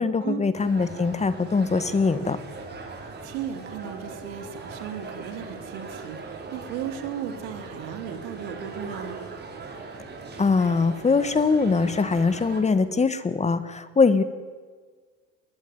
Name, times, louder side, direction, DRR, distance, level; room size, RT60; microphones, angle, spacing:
voice 1, 0.0-2.4 10.4-14.2, left 4 dB, 20° left, 12 dB, 1.7 m, -22 dB
sound 1, 0.5-12.6, right 3 dB, 30° right, 6.0 m, -40 dB
voice 2, 3.0-9.2, right 9 dB, 80° right, 7 dB, 3.3 m, -35 dB
21.0 x 20.5 x 9.5 m, 1.5 s
supercardioid pair, 105°, 32 cm